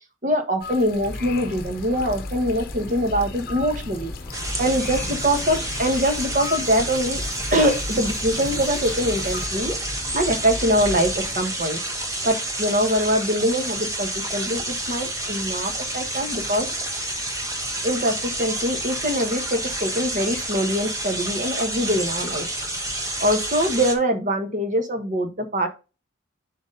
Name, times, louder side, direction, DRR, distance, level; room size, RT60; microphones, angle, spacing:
voice 1, 0.2-4.1 4.6-7.2 7.5-9.7 10.1-11.8 12.2-16.7 17.8-22.4 23.2-25.7, equal, 40° right, 6 dB, 1.2 m, -23 dB
sound 1, 0.6-9.5, left 5 dB, 45° left, 0.8 m, -38 dB
sound 2, 1.0-11.4, left 1 dB, 10° left, 1.3 m, -35 dB
sound 3, 4.3-23.9, right 1 dB, 15° right, 1.1 m, -29 dB
6.1 x 3.9 x 5.3 m, 0.30 s
head